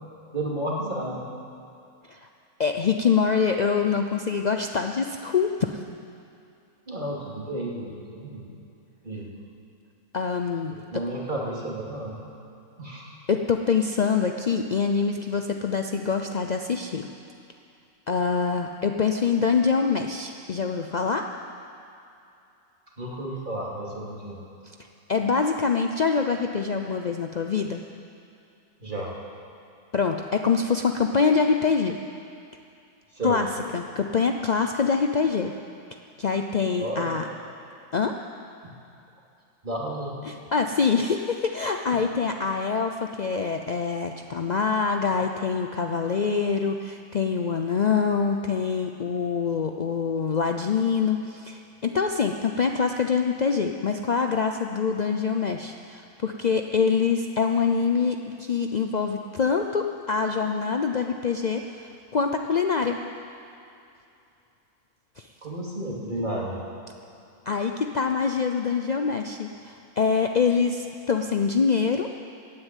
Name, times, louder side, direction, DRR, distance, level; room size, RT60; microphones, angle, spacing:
voice 1, 0.3-1.2 6.9-8.5 9.0-9.3 10.9-12.2 12.8-13.1 23.0-24.4 28.8-29.1 33.1-33.4 36.8-37.1 39.6-40.1 65.4-66.6, right 1 dB, 30° right, -3 dB, 2.8 m, -32 dB
voice 2, 2.6-5.8 10.1-11.0 13.3-17.1 18.1-21.3 25.1-27.8 29.9-32.0 33.2-33.5 33.7-35.5 36.2-37.3 37.9-38.1 40.2-63.0 65.2-65.3 67.5-72.1, left 5 dB, 70° left, 4 dB, 0.4 m, -25 dB
15.5 x 9.8 x 9.2 m, 2.6 s
omnidirectional pair, 1.6 m